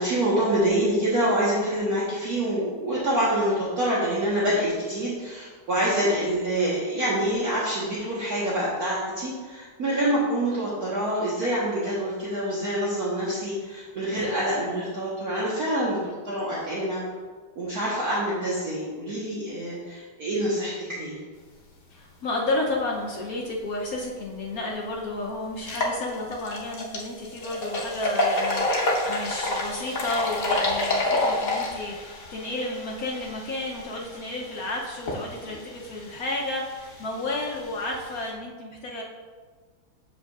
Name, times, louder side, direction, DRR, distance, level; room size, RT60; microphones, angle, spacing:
voice 1, 0.0-17.0 17.6-21.2, right 1 dB, 50° right, -8 dB, 1.5 m, -26 dB
voice 2, 21.9-39.0, left 2 dB, 65° left, -2 dB, 0.9 m, -32 dB
sound 1, 24.3-24.4 24.8-24.9 25.5-38.3, left 2 dB, 50° left, 1.3 m, -29 dB
7.9 x 7.2 x 2.4 m, 1.5 s
omnidirectional pair, 2.3 m